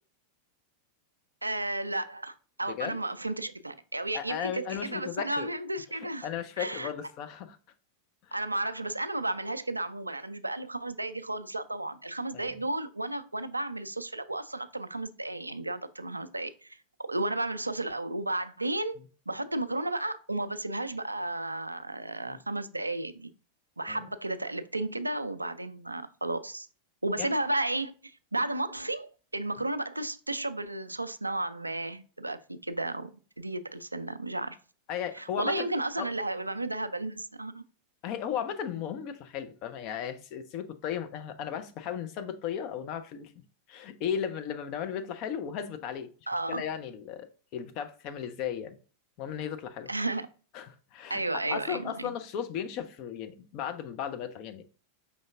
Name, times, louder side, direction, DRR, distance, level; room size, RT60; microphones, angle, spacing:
voice 1, 1.4-6.3 6.6-6.9 8.3-19.0 19.3-23.3 23.8-26.7 27.0-34.6 35.1-37.6 46.3-46.6 49.9-50.3 51.1-52.1, right 2 dB, 85° right, 0.3 m, -33 dB
voice 2, 2.7-3.0 4.1-5.5 5.9-7.6 8.3-8.4 12.3-12.6 22.3-22.4 23.9-24.0 27.2-27.3 34.9-35.7 36.0-36.1 38.0-43.3 43.7-46.1 46.5-47.3 47.5-48.8 49.2-49.9 50.5-51.2 51.5-54.6, left 8 dB, 40° left, 0.6 m, -35 dB
5.2 x 3.5 x 2.5 m
figure-of-eight pair, 90°, 0 cm